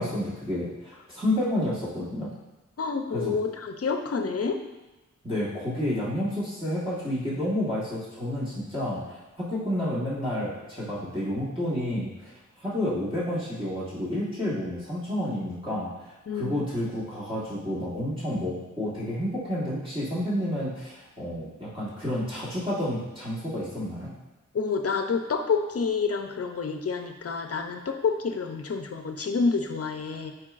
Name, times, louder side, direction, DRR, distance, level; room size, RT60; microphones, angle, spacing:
voice 1, 0.0-2.3 3.1-3.3 5.2-12.3 12.6-24.1, left 1 dB, 15° right, -10 dB, 1.6 m, -30 dB
voice 2, 2.8-4.6 16.3-16.6 24.5-30.3, left 5 dB, 50° left, 5 dB, 0.6 m, -28 dB
8.7 x 4.6 x 2.5 m, 1.1 s
wide cardioid pair, 90°, 31 cm